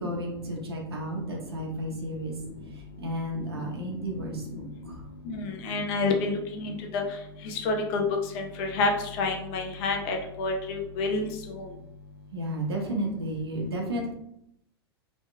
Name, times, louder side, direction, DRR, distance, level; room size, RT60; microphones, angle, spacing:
voice 1, 0.0-2.3 3.0-5.0 12.3-14.1, right 1 dB, 80° right, 0 dB, 0.9 m, -32 dB
voice 2, 5.3-7.0 7.6-8.0 8.4-8.9 9.2-11.3, left 3 dB, 45° left, 3 dB, 0.7 m, -28 dB
3.1 x 2.9 x 2.2 m, 0.76 s
hypercardioid pair, 100°, 13 cm